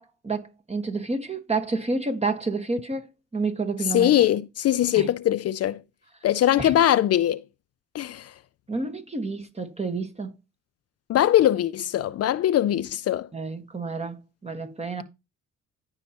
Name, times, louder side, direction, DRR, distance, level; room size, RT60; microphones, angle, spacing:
voice 1, 0.0-4.1 4.9-5.1 6.6-6.7 8.7-10.3 13.3-15.0, right 3 dB, 20° right, 1.5 m, -29 dB
voice 2, 3.9-5.8 6.2-7.4 7.9-8.3 11.1-13.3, left 12 dB, 55° left, 0.4 m, -21 dB
14.0 x 5.7 x 2.9 m
cardioid pair, 90°, 30 cm